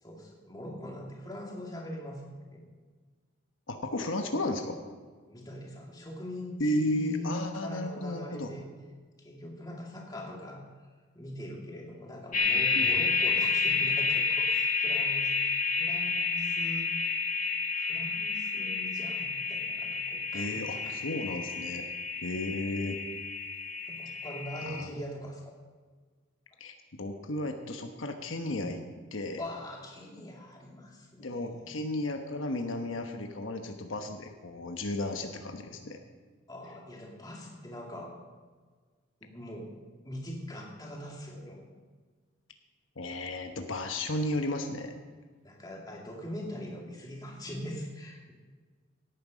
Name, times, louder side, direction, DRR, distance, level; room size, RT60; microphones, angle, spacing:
voice 1, 0.0-2.6 5.3-8.7 9.2-10.6 11.1-17.2 17.7-21.0 23.9-25.5 29.4-31.7 36.5-38.2 39.2-39.8 40.0-41.7 45.4-48.3, left 1 dB, 20° left, -1 dB, 2.4 m, -42 dB
voice 2, 3.7-4.8 6.6-8.5 12.7-13.0 20.3-21.9 22.2-23.0 24.6-24.9 26.6-28.8 29.1-29.4 31.2-36.0 43.0-44.9, left 1 dB, 75° left, 5 dB, 1.1 m, -34 dB
sound 1, 12.3-24.8, left 4 dB, 40° left, 1.7 m, -30 dB
17.0 x 9.5 x 5.2 m, 1.5 s
head